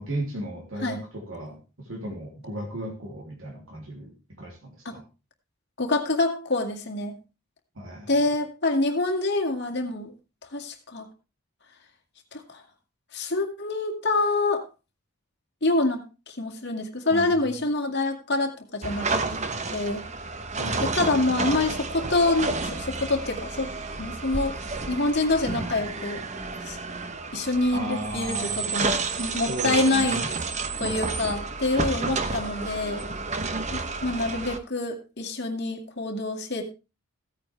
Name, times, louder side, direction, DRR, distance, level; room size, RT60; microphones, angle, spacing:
voice 1, 0.0-5.0 7.7-8.1 17.1-17.6 20.6-20.8 27.7-30.3 30.8-30.9, right 1 dB, 65° right, 1 dB, 2.9 m, -35 dB
voice 2, 5.8-7.2 8.1-10.1 10.5-11.1 12.3-12.6 13.1-14.6 15.6-16.0 16.3-19.4 19.7-20.0 20.8-23.7 24.0-24.5 24.9-26.2 26.7-26.8 27.3-30.2 30.8-33.0 33.7-36.6, left 2 dB, 50° left, 3 dB, 2.2 m, -26 dB
sound 1, 18.8-34.6, right 3 dB, 30° right, 0.9 m, -31 dB
15.5 x 8.8 x 3.3 m, 0.29 s
head